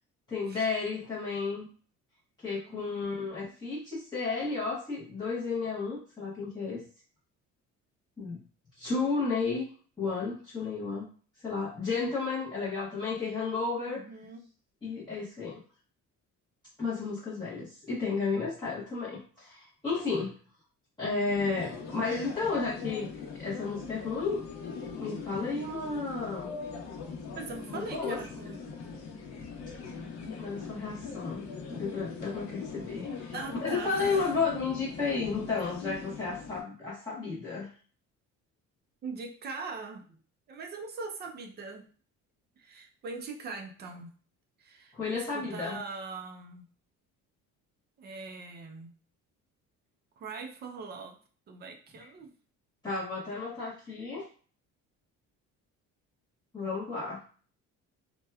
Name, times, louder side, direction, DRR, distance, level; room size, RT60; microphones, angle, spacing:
voice 1, 0.3-1.7 2.4-6.8 8.2-8.4 8.8-9.7 10.0-11.0 11.4-14.0 14.8-15.6 16.8-20.3 21.0-23.1 23.4-24.4 25.0-26.5 27.7-28.2 30.4-33.3 33.6-37.7 44.9-45.8 52.8-54.2 56.5-57.2, left 4 dB, 15° left, -9 dB, 0.7 m, -32 dB
voice 2, 2.5-3.3 13.8-14.5 27.3-28.8 33.3-34.3 39.0-40.2 40.5-41.9 42.6-44.1 44.6-46.7 48.0-48.9 50.2-51.2 51.5-52.3, right 4 dB, 35° right, 4 dB, 0.4 m, -41 dB
sound 1, 21.3-36.6, left 5 dB, 65° left, 0.8 m, -41 dB
4.2 x 2.2 x 2.3 m, 0.41 s
cardioid pair, 170°, 30 cm